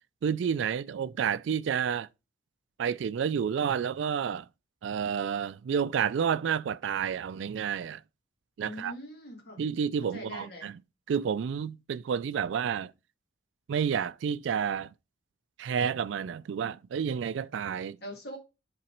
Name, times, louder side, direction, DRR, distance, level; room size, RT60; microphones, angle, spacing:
voice 1, 0.2-2.1 2.8-4.5 4.8-8.0 8.6-8.9 9.6-10.8 11.1-12.9 13.7-14.9 15.6-18.0, right 7 dB, 75° right, 0.3 m, -30 dB
voice 2, 8.6-9.6 10.1-10.7 18.0-18.4, equal, 55° left, 1.9 m, -42 dB
7.7 x 3.9 x 4.4 m
head